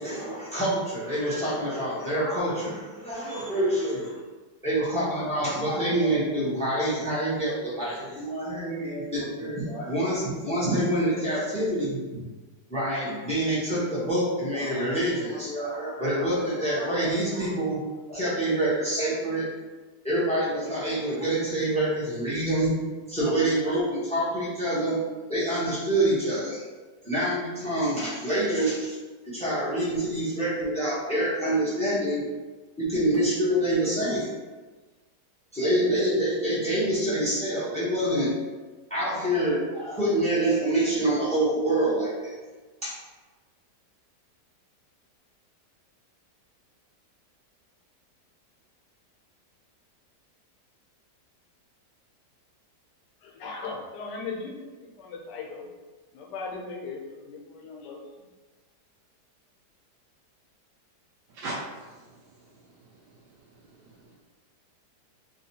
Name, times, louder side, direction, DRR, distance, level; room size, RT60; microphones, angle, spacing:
voice 1, 0.0-4.2 4.6-12.2 12.7-17.8 18.1-19.5 20.0-22.8 23.1-25.0 25.3-26.8 27.0-29.0 29.2-32.2 32.8-34.3 35.5-38.4 38.9-42.4 42.8-43.0, right 1 dB, 5° left, -9 dB, 0.5 m, -26 dB
voice 2, 53.2-54.7 55.0-55.7 56.1-58.0, left 4 dB, 85° left, 0 dB, 1.2 m, -37 dB
voice 3, 61.3-63.2 63.5-64.2, right 2 dB, 85° right, -5 dB, 1.2 m, -41 dB
3.0 x 2.8 x 2.7 m, 1.3 s
omnidirectional pair, 1.8 m